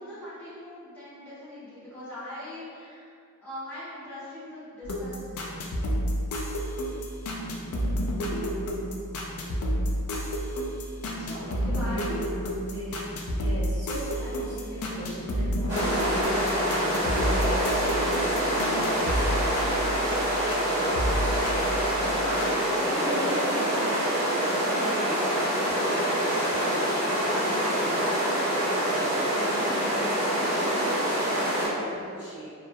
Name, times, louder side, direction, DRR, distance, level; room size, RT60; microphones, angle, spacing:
voice 1, 0.0-3.1 3.4-5.8 11.2-12.1 22.2-23.5 24.6-24.9 25.8-26.4, left 1 dB, 5° left, -13 dB, 0.7 m, -41 dB
sound 1, 4.8-20.7 21.0-22.5, equal, 75° left, 0.3 m, -30 dB
voice 2, 11.1-12.2 12.6-16.4 16.7-19.3 22.8-24.0 24.8-25.2 28.6-32.5, equal, 50° right, -11 dB, 0.9 m, -39 dB
sound 2, 15.7-31.7, equal, 15° right, 1.2 m, -26 dB
2.3 x 2.1 x 2.6 m, 2.4 s
head